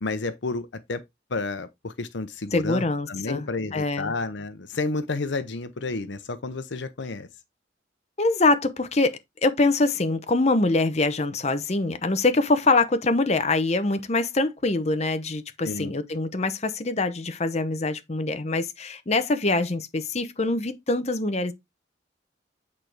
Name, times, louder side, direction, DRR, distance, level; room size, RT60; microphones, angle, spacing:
voice 1, 0.0-1.0 1.3-7.3 15.6-15.9, left 3 dB, 70° left, 0.8 m, -31 dB
voice 2, 2.5-4.1 8.2-21.5, left 2 dB, 35° left, 0.8 m, -24 dB
8.5 x 4.5 x 3.3 m
head